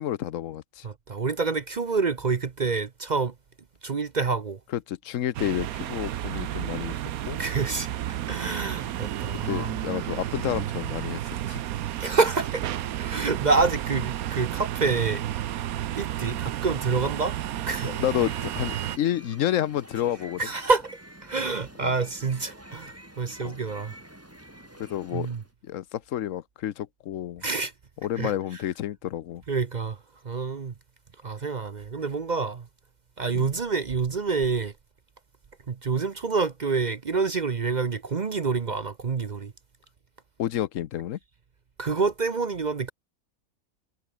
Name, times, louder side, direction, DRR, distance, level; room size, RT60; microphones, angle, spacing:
voice 1, 0.0-0.9 4.7-6.9 7.3-7.4 9.5-11.6 17.8-20.4 21.8-22.0 23.4-23.6 24.8-25.3 25.6-27.4 28.0-29.4 33.3-33.5 40.4-41.2, left 11 dB, 70° left, 1.1 m, -30 dB
voice 2, 0.8-3.3 3.8-4.6 7.4-7.9 8.3-9.8 12.0-12.7 13.0-15.2 15.9-17.4 17.7-17.9 20.4-20.9 21.2-23.9 25.1-25.4 27.4-27.7 28.2-28.3 29.5-30.0 30.2-30.7 31.2-32.7 33.2-34.7 35.7-39.5 41.8-42.9, right 4 dB, 40° right, 0.8 m, -27 dB
sound 1, 5.3-19.0, right 12 dB, 90° right, 1.2 m, -32 dB
sound 2, 17.9-25.5, right 1 dB, 10° right, 2.9 m, -48 dB
omnidirectional pair, 1.5 m